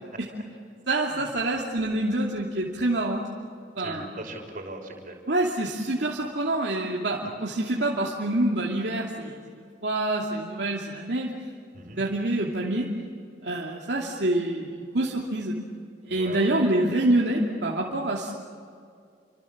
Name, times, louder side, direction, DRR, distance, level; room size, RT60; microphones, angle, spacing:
voice 1, 0.9-3.2 3.8-4.0 5.3-9.3 9.8-11.3 11.8-12.9 13.4-15.5 16.1-18.3, right 1 dB, 70° right, -3 dB, 2.7 m, -26 dB
voice 2, 3.8-5.2 11.7-12.0 16.1-16.6, right 2 dB, 50° right, 2 dB, 5.9 m, -39 dB
30.0 x 25.5 x 7.4 m, 2.2 s
head